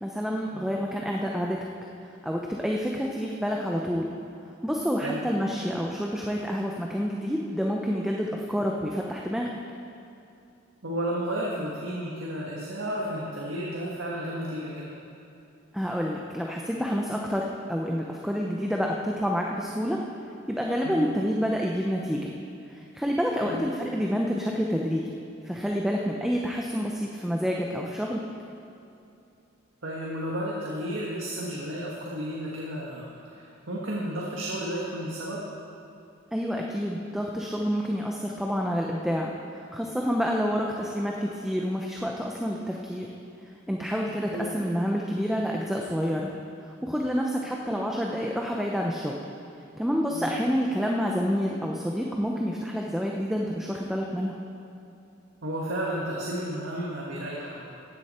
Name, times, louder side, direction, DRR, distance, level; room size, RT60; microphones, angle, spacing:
voice 1, 0.0-1.6 2.2-4.1 4.6-9.5 15.7-20.0 20.5-22.3 22.9-25.1 25.4-28.2 36.3-43.1 43.7-46.3 46.8-49.2 49.8-54.4, equal, ahead, -1 dB, 0.7 m, -28 dB
voice 2, 10.8-15.0 20.8-21.1 23.4-23.6 29.8-35.4 44.1-44.5 50.1-50.2 55.4-57.7, right 1 dB, 80° right, -4 dB, 1.6 m, -32 dB
15.0 x 10.0 x 4.4 m, 2.6 s
head